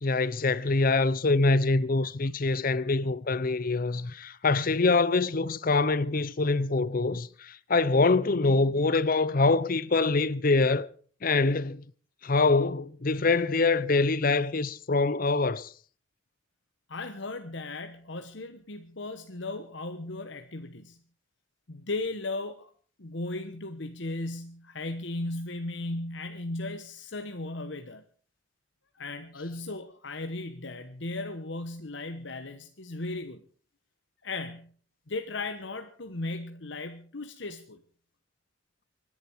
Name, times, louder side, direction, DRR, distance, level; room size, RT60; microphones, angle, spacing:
voice 1, 0.0-10.9 11.2-11.8 12.2-15.7, left 3 dB, 45° left, 0.6 m, -25 dB
voice 2, 16.9-21.0 21.7-22.7 23.0-28.0 29.0-33.4 34.2-34.7 35.1-37.8, left 2 dB, 60° left, 1.1 m, -36 dB
25.0 x 11.0 x 4.6 m
head